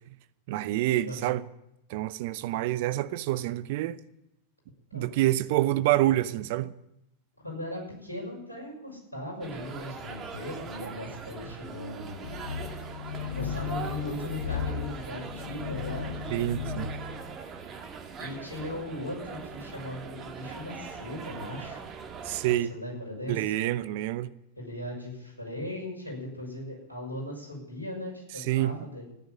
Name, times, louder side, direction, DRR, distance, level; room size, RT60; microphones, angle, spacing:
voice 1, 0.5-1.4 1.9-4.0 4.9-6.7 16.3-16.9 22.2-22.7 23.3-24.3 28.4-28.7, right 15 dB, 50° right, 0.7 m, -27 dB
voice 2, 1.0-1.4 4.9-5.1 7.4-12.4 13.3-16.1 18.2-21.8 22.4-23.5 24.6-29.0, left 1 dB, 85° left, 6.3 m, -38 dB
sound 1, 9.4-22.6, right 5 dB, 25° right, 2.1 m, -41 dB
sound 2, 12.2-17.2, left 7 dB, 60° left, 1.8 m, -35 dB
14.5 x 10.5 x 8.6 m
figure-of-eight pair, 90°, 0 cm